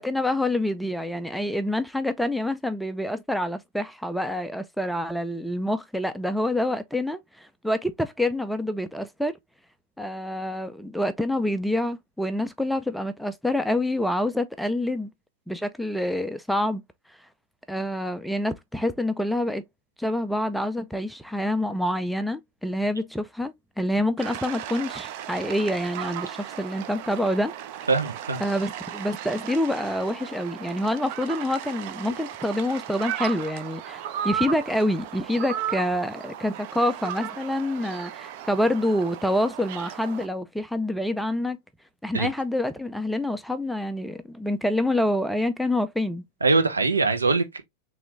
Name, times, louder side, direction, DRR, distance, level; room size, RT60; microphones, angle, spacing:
voice 1, 0.0-9.3 10.0-15.1 15.5-16.8 17.7-19.6 20.0-27.5 28.4-41.6 42.0-46.2, left 1 dB, ahead, 0.4 m, -27 dB
sound 1, 24.2-40.3, right 10 dB, 45° right, 0.6 m, -36 dB
voice 2, 27.9-28.4 42.1-42.3 46.4-47.6, right 3 dB, 80° right, 0.9 m, -22 dB
3.8 x 3.1 x 3.1 m
figure-of-eight pair, 90°, 0 cm